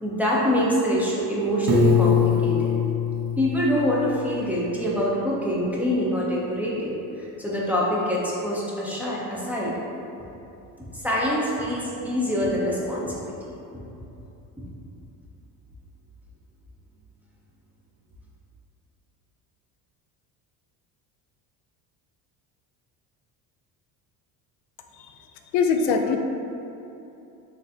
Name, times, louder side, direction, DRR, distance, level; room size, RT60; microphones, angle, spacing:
voice 1, 0.0-2.7 3.4-6.9 7.4-9.7 10.9-13.2, equal, 5° right, -7 dB, 0.4 m, -25 dB
Piano, 1.7-4.6, left 5 dB, 45° right, 0.7 m, -23 dB
voice 2, 25.5-26.2, left 5 dB, 90° left, 4 dB, 0.5 m, -21 dB
6.2 x 2.5 x 2.6 m, 2.9 s
cardioid pair, 145°, 39 cm